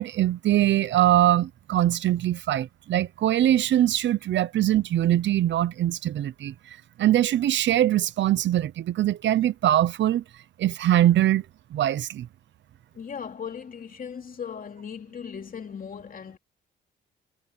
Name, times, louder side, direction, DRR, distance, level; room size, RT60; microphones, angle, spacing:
voice 1, 0.0-10.2 10.6-11.4 11.7-12.3, right 12 dB, 70° right, 0.9 m, -22 dB
voice 2, 12.9-16.4, left 7 dB, 45° left, 2.9 m, -38 dB
cardioid pair, 90°, 20 cm